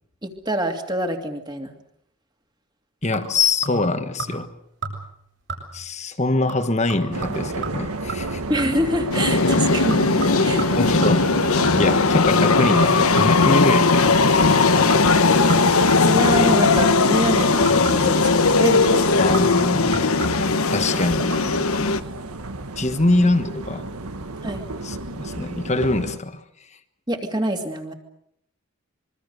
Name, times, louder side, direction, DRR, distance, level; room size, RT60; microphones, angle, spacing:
voice 1, 0.2-1.7 8.5-10.0 10.4-10.7 16.0-19.2 24.4-24.6 27.1-27.9, right 1 dB, 20° right, 5 dB, 2.6 m, -25 dB
voice 2, 3.0-4.5 5.7-8.4 10.7-11.4 11.8-15.1 19.2-20.0 20.7-21.3 22.8-23.8 24.8-26.4, left 2 dB, 30° left, 9 dB, 1.4 m, -23 dB
sound 1, 3.1-3.9 4.2-4.6 4.8-5.2 5.5-5.9 6.5-8.9 9.5-12.0 12.6-13.8 14.4-14.6 14.9-16.6 17.2-18.2 18.8-20.6 21.2-21.4 21.7-21.8, right 3 dB, 55° right, 7.2 m, -35 dB
sound 2, 7.1-26.2, right 2 dB, 90° right, 1.7 m, -32 dB
sound 3, 9.1-22.0, left 4 dB, 75° left, 1.3 m, -18 dB
26.0 x 23.5 x 6.8 m, 0.73 s
head